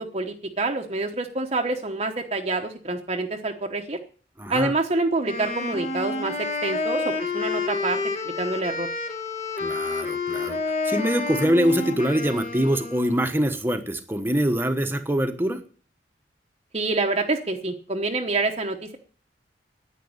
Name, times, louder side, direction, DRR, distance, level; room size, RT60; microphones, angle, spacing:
voice 1, 0.0-4.0 4.5-8.9 16.7-19.0, right 2 dB, 35° right, 3 dB, 1.0 m, -27 dB
voice 2, 4.4-4.7 9.6-10.6 10.8-15.6, equal, 10° right, 7 dB, 1.2 m, -24 dB
Wind instrument woodwind instrument, 5.2-13.3, left 3 dB, 35° left, 2.0 m, -29 dB
10.5 x 9.3 x 8.8 m, 0.44 s
head